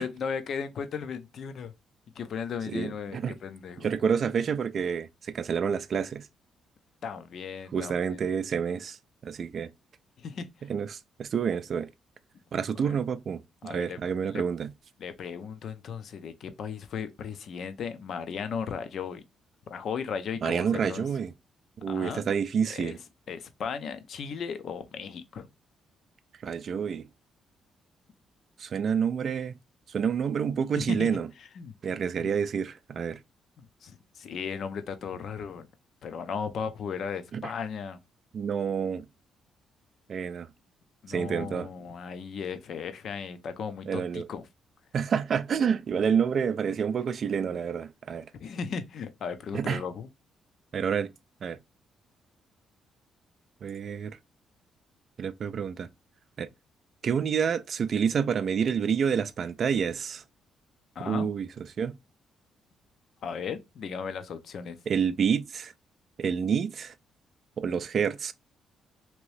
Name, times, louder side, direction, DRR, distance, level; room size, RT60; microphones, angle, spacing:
voice 1, 0.0-1.7 2.2-3.9 7.0-8.0 10.2-10.5 12.8-13.0 13.6-14.4 15.0-19.2 19.7-21.0 21.9-22.2 22.7-23.0 23.3-25.5 30.8-31.7 32.2-32.3 33.6-35.7 36.0-38.0 41.0-44.4 47.5-47.6 48.3-50.1 61.0-61.3 63.2-64.8, left 6 dB, 60° left, 0.5 m, -36 dB
voice 2, 2.7-3.4 3.8-6.3 7.7-9.0 9.2-9.7 10.7-11.9 12.5-14.7 20.4-21.3 21.8-23.0 26.4-27.1 28.6-29.6 29.9-31.3 31.8-33.2 37.3-37.4 38.3-39.1 40.1-40.5 41.1-41.7 43.9-44.3 44.9-48.3 49.5-49.8 50.7-51.1 51.4-51.6 53.6-54.2 55.2-55.9 56.4-56.5 57.0-60.2 61.0-62.0 64.9-65.7 66.2-66.9 67.6-68.3, right 7 dB, 55° right, 0.3 m, -28 dB
2.9 x 2.6 x 3.2 m
cardioid pair, 90°, 0 cm